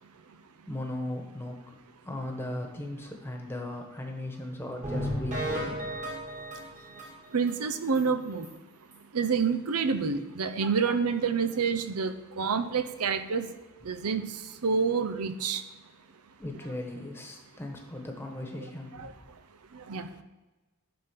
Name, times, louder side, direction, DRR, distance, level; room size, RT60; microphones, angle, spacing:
voice 1, 0.7-1.7 2.0-5.9 16.4-19.1, left 1 dB, 10° left, 2 dB, 1.2 m, -37 dB
sound 1, 4.8-7.6 8.0-8.1 8.4-8.5 8.9-9.0, equal, 35° right, 1.9 m, -34 dB
voice 2, 7.3-8.5 9.1-13.4 13.9-14.2 14.6-15.6 19.0-19.1 19.9-20.1, right 5 dB, 90° right, 10 dB, 0.7 m, -28 dB
11.5 x 3.8 x 5.7 m, 1.2 s
head